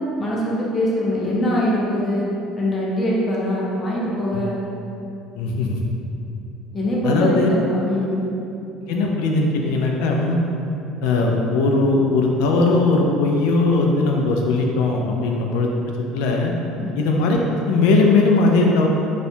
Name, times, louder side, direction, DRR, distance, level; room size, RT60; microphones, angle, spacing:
voice 1, 0.2-2.2 2.6-4.5 6.7-8.2 16.8-17.0, left 1 dB, 20° left, -5 dB, 0.5 m, -22 dB
voice 2, 5.3-5.8 7.0-7.5 8.9-10.4 11.0-15.7 16.1-16.5 17.0-18.9, left 3 dB, 80° left, 1 dB, 0.3 m, -19 dB
4.2 x 2.2 x 2.6 m, 2.8 s
cardioid pair, 180°, 0 cm